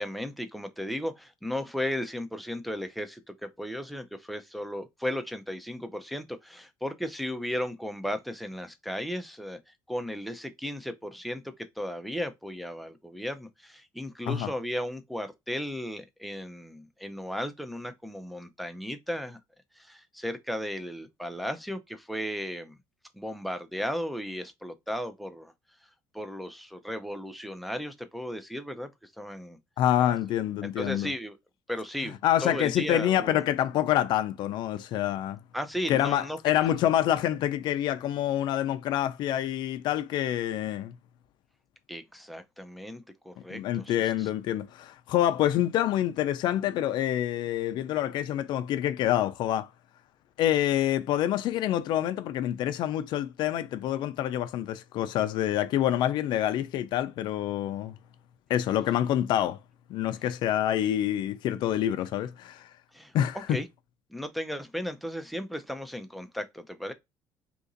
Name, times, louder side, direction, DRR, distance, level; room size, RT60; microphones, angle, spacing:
voice 1, 0.0-9.6 9.9-19.4 19.8-22.8 23.1-25.5 26.1-29.6 30.0-30.2 30.6-31.4 31.7-32.2 32.4-33.4 35.5-36.4 41.9-44.3 62.9-63.1 63.5-63.7 64.1-66.9, equal, ahead, 0.5 m, -35 dB
voice 2, 29.8-31.1 32.2-35.4 35.9-41.0 43.5-49.7 50.4-57.9 58.5-59.6 59.9-62.7 63.1-63.6, left 12 dB, 60° left, 0.4 m, -27 dB
2.9 x 2.6 x 3.8 m
cardioid pair, 125°, 9 cm